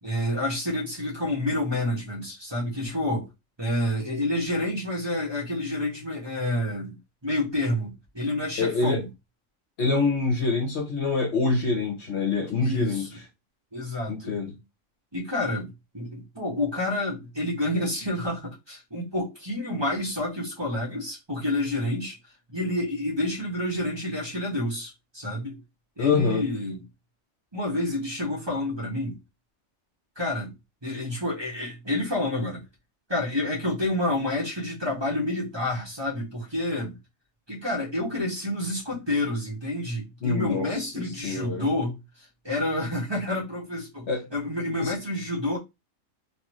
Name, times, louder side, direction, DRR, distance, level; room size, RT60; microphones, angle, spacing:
voice 1, 0.0-3.3 3.6-7.0 7.2-9.1 12.6-13.1 13.7-14.3 15.1-22.2 22.5-25.6 26.0-26.8 27.5-29.2 30.1-30.5 30.8-32.6 33.1-36.9 37.5-42.0 42.4-45.6, left 1 dB, 20° right, 1.4 m, -29 dB
voice 2, 8.6-9.0 9.8-13.1 14.1-14.5 26.0-26.4 40.2-41.7 44.1-44.3 44.8-44.9, left 4 dB, 55° left, 1.1 m, -25 dB
4.0 x 2.7 x 3.0 m
omnidirectional pair, 1.4 m